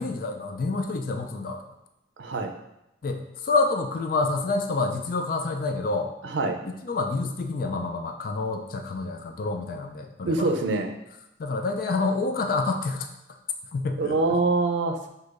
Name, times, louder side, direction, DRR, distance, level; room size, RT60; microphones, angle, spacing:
voice 1, 0.0-1.6 3.0-6.1 6.6-10.5 11.4-13.1 13.7-14.2, left 3 dB, 50° left, 4 dB, 0.3 m, -28 dB
voice 2, 2.2-2.5 6.3-6.6 10.2-10.9 14.0-15.1, right 3 dB, 75° right, 4 dB, 0.5 m, -24 dB
6.1 x 2.7 x 2.5 m, 0.88 s
head